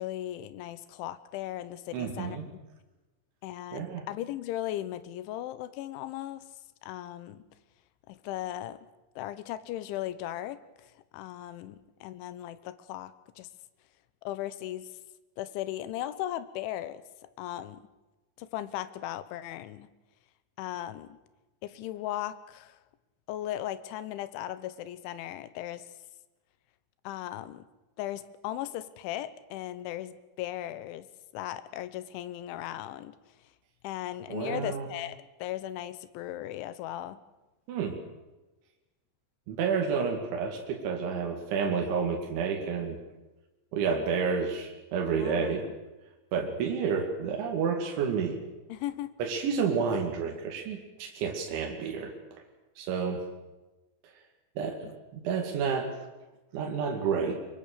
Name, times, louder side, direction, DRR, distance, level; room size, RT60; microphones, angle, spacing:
voice 1, 0.0-2.4 3.4-6.5 6.8-7.4 8.1-8.8 9.2-13.5 14.2-14.9 15.4-17.0 17.4-17.8 18.4-19.9 20.6-21.2 21.6-22.8 23.3-25.8 27.0-27.7 28.0-31.1 31.3-33.2 33.8-37.2 45.2-45.6 48.7-49.1, left 13 dB, 90° left, 14 dB, 3.4 m, -37 dB
voice 2, 1.9-2.5 3.7-4.0 34.3-34.9 37.7-38.0 39.5-43.0 43.7-45.6 46.3-48.4 49.2-52.1 52.8-53.2 54.6-55.9 56.5-57.4, right 6 dB, 80° right, 2 dB, 4.7 m, -30 dB
24.0 x 23.5 x 6.7 m, 1.1 s
omnidirectional pair, 5.3 m